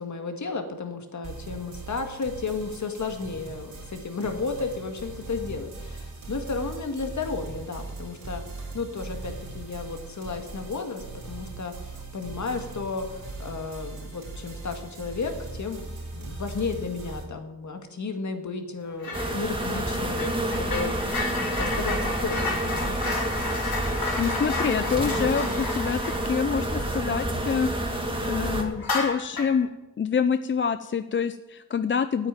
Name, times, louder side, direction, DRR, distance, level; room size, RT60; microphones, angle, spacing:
voice 1, 0.0-8.4 8.7-15.9 16.1-23.0, left 4 dB, 50° left, 5 dB, 1.9 m, -33 dB
sound 1, 1.2-17.2, right 3 dB, 70° right, 4.2 m, -40 dB
sound 2, 19.0-19.3 19.6-27.8 28.1-28.3 28.8-29.6, left 3 dB, 75° left, 4.2 m, -32 dB
sound 3, 19.1-28.6, right 1 dB, 15° right, 2.2 m, -29 dB
voice 2, 24.2-29.7 30.0-32.3, left 6 dB, 35° left, 11 dB, 0.4 m, -27 dB
9.2 x 9.1 x 9.0 m, 1.0 s
wide cardioid pair, 95°, 36 cm